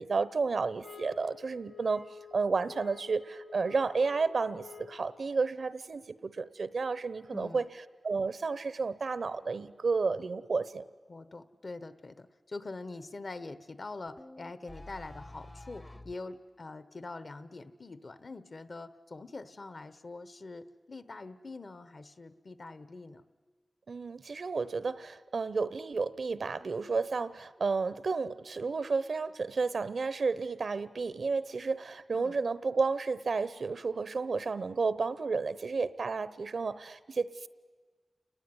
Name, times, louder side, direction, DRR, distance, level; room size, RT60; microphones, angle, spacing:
voice 1, 0.0-7.7 8.0-10.8 23.9-37.5, right 4 dB, 70° right, 16 dB, 0.8 m, -32 dB
sound 1, 0.8-5.2, left 6 dB, 85° left, 1.1 m, -50 dB
voice 2, 7.3-7.7 11.1-23.2 32.1-32.4, left 3 dB, 50° left, 14 dB, 1.1 m, -44 dB
sound 2, 14.1-16.2, left 1 dB, 20° left, 0.8 m, -48 dB
29.5 x 20.0 x 9.6 m, 1.5 s
wide cardioid pair, 90°, 0 cm